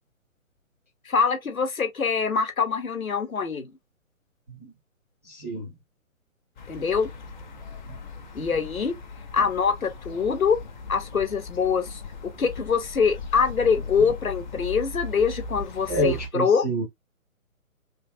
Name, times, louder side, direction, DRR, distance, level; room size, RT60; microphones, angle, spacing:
voice 1, 1.1-3.7 6.7-7.1 8.3-8.9 9.3-10.6 10.9-16.6, left 6 dB, 80° left, 0.9 m, -24 dB
voice 2, 5.2-5.7 7.9-8.0 8.4-8.7 9.4-9.5 15.9-16.9, right 1 dB, 10° right, 0.4 m, -28 dB
sound 1, 6.6-16.3, left 3 dB, 35° left, 0.7 m, -38 dB
3.2 x 2.4 x 2.6 m
figure-of-eight pair, 130°, 41 cm